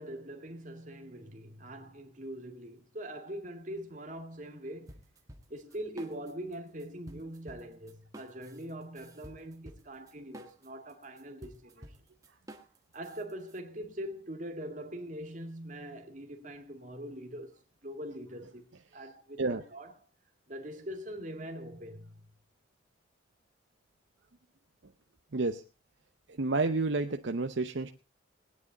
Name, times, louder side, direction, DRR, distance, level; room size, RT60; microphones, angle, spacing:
voice 1, 0.0-5.0 5.5-12.0 12.9-18.7 18.9-19.9 20.5-22.2, right 1 dB, 40° right, 2.3 m, -42 dB
sound 1, 4.9-6.5 6.8-13.6, right 1 dB, 15° right, 1.4 m, -51 dB
voice 2, 25.3-25.6 26.4-27.9, right 3 dB, 65° right, 0.7 m, -30 dB
20.5 x 9.5 x 4.0 m
head